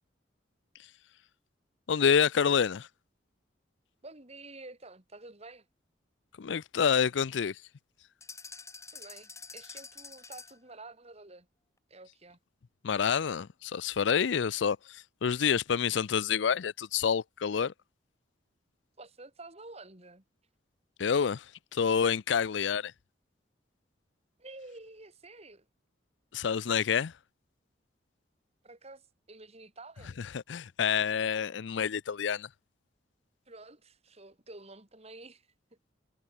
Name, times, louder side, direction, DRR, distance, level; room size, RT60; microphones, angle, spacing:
voice 1, 1.9-2.9 6.4-7.6 12.8-17.7 21.0-22.9 26.3-27.1 30.3-32.5, left 7 dB, 70° left, 0.5 m, -28 dB
voice 2, 4.0-5.7 8.9-11.5 11.9-12.4 19.0-20.2 24.4-25.7 28.6-30.2 33.5-35.9, right 2 dB, 35° right, 4.2 m, -50 dB
sound 1, 8.2-10.7, left 5 dB, 15° left, 2.0 m, -47 dB
head